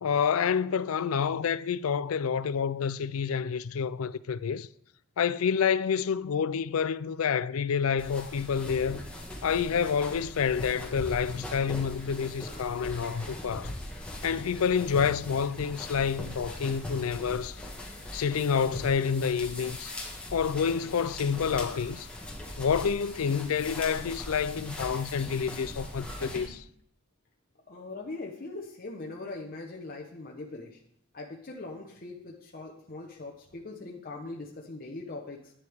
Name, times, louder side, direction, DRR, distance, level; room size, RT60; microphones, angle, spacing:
voice 1, 0.0-4.7 5.2-9.0 9.4-13.7 14.2-17.6 18.1-19.9 20.3-22.1 22.6-26.6, left 6 dB, 85° left, 0.4 m, -28 dB
sound 1, 8.0-26.5, left 1 dB, 5° left, 1.5 m, -40 dB
voice 2, 27.7-30.8 31.1-35.5, left 2 dB, 45° left, 0.9 m, -41 dB
11.0 x 9.7 x 3.5 m
head